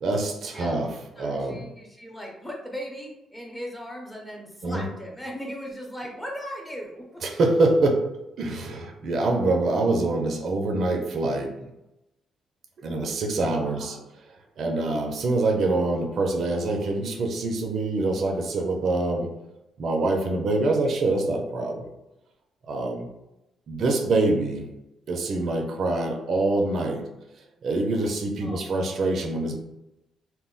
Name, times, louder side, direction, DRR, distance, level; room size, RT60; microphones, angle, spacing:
voice 1, 0.0-1.6 4.6-4.8 7.2-8.0 8.4-11.7 12.8-14.0 14.6-19.3 19.8-21.9 22.7-23.1 23.7-24.7 25.1-27.0 27.6-29.6, right 2 dB, 60° right, 2 dB, 0.5 m, -25 dB
voice 2, 1.2-7.2 13.7-14.0 28.4-28.6, equal, 10° left, -1 dB, 0.8 m, -38 dB
2.2 x 2.0 x 3.7 m, 0.92 s
cardioid pair, 90°, 0 cm